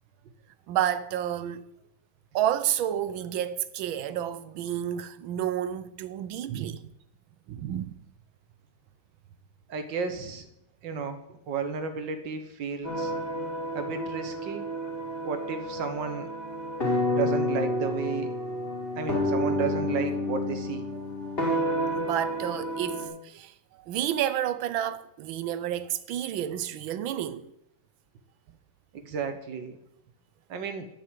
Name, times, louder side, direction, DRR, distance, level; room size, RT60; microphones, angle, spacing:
voice 1, 0.7-1.7 2.3-6.9 7.5-8.0 21.9-27.5, right 11 dB, 90° right, 1.5 m, -30 dB
voice 2, 9.7-10.5 10.8-13.1 13.7-14.7 15.2-16.3 17.1-18.3 19.0-20.9 28.9-29.8 30.5-30.9, right 5 dB, 70° right, 1.7 m, -33 dB
sound 1, 12.8-23.1, left 1 dB, 30° left, 3.2 m, -30 dB
11.0 x 6.5 x 7.5 m
omnidirectional pair, 2.1 m